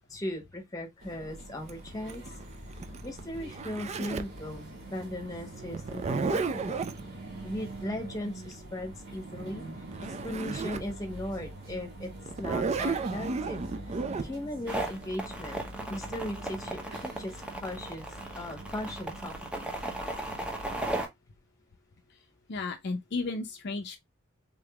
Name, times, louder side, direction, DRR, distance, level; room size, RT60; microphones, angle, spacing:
voice 1, 0.1-2.4 3.0-6.8 7.4-9.7 10.0-12.1 12.4-15.6 15.9-18.1 18.3-19.7, left 1 dB, 15° left, 1.2 m, -38 dB
sound 1, 1.0-20.9, right 1 dB, 60° right, 1.9 m, -44 dB
Zipper (clothing), 1.7-4.4 5.7-7.0 9.6-9.7 9.9-10.9 11.4-11.5 12.3-14.3, right 4 dB, 30° right, 0.4 m, -32 dB
sound 2, 14.7-21.1, right 1 dB, 5° right, 0.7 m, -36 dB
voice 2, 22.5-24.0, left 3 dB, 55° left, 0.5 m, -33 dB
3.7 x 3.5 x 2.2 m
head